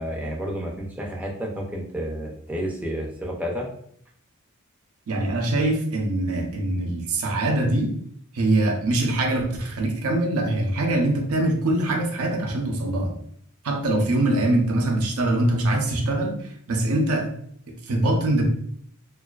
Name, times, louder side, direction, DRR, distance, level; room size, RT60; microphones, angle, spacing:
voice 1, 0.0-3.7, equal, 5° right, -2 dB, 0.4 m, -30 dB
voice 2, 5.1-8.0 8.3-13.2 13.6-17.3 17.7-18.4, right 1 dB, 90° right, 1 dB, 0.5 m, -23 dB
2.4 x 2.3 x 2.3 m, 0.64 s
head